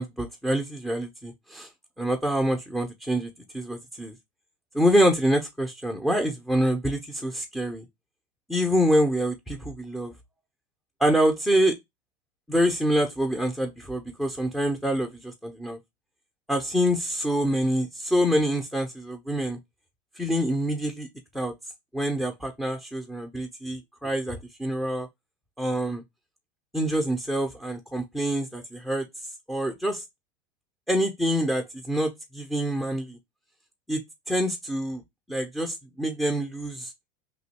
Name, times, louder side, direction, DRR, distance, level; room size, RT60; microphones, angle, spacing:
voice 1, 0.0-1.7 2.0-4.1 4.7-7.9 8.5-10.1 11.0-11.7 12.5-15.8 16.5-19.6 20.2-21.1 21.3-21.5 21.9-25.1 25.6-26.0 26.7-29.1 29.5-30.0 30.9-33.2 33.9-34.0 34.3-35.0 35.3-36.9, equal, ahead, 0.5 m, -26 dB
3.0 x 2.7 x 4.1 m
hypercardioid pair, 105°, 30 cm